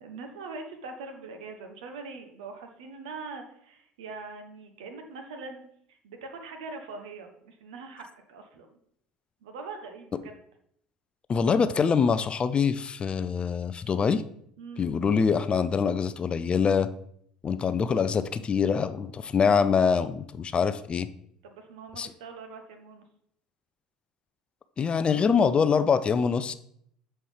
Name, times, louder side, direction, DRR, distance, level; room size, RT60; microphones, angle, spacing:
voice 1, 0.0-8.8 9.4-10.4 14.6-14.9 21.4-23.0 26.3-26.5, right 4 dB, 75° right, 5 dB, 0.9 m, -42 dB
voice 2, 11.3-14.2 14.8-16.9 17.4-21.1 22.0-22.1 24.8-26.5, left 6 dB, 30° left, 13 dB, 0.4 m, -24 dB
6.9 x 4.3 x 3.3 m, 0.68 s
hypercardioid pair, 65°, 3 cm